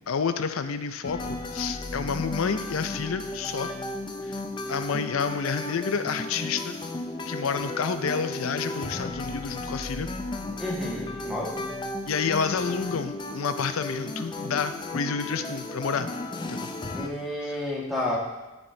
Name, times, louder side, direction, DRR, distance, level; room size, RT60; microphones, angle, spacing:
voice 1, 0.1-3.7 4.2-4.4 4.7-6.8 7.3-10.1 12.1-16.1 16.5-16.7 17.4-17.6, left 5 dB, 75° left, 10 dB, 0.5 m, -29 dB
sound 1, 1.0-17.1, left 2 dB, 20° left, 0.4 m, -34 dB
voice 2, 10.6-11.7 16.9-18.2, left 1 dB, ahead, -5 dB, 1.4 m, -30 dB
12.5 x 4.3 x 3.3 m, 1.1 s
head